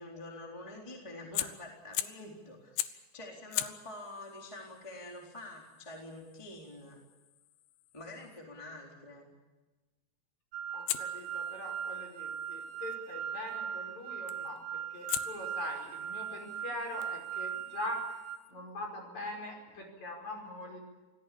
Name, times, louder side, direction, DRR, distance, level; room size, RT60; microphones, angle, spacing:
voice 1, 0.0-7.0 7.9-9.3, left 1 dB, 5° left, 0 dB, 3.2 m, -47 dB
Fire, 1.3-2.3 2.8-3.1 3.5-8.4 10.9-13.0 14.3-14.6 15.1-18.5, left 14 dB, 75° left, 3.0 m, -42 dB
sound 1, 10.5-18.4, right 8 dB, 85° right, 4.1 m, -39 dB
voice 2, 10.7-18.1 18.5-20.8, left 2 dB, 40° left, 2 dB, 6.4 m, -42 dB
27.0 x 18.0 x 8.6 m, 1.2 s
omnidirectional pair, 5.3 m